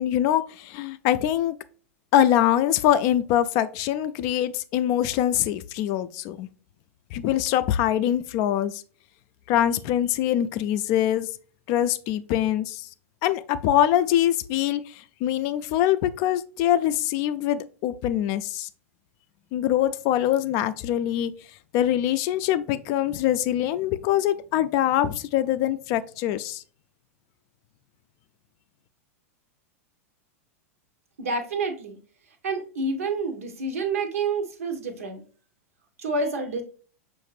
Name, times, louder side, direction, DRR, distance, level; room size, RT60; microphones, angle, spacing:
voice 1, 0.0-1.6 2.1-6.5 7.1-8.8 9.5-11.3 11.7-12.9 13.2-18.7 19.5-21.3 21.7-26.6, left 11 dB, 45° left, 0.3 m, -23 dB
voice 2, 31.2-32.0 32.4-35.2 36.0-36.6, right 3 dB, 75° right, 0.9 m, -28 dB
5.5 x 2.5 x 3.2 m
hypercardioid pair, 100°, 8 cm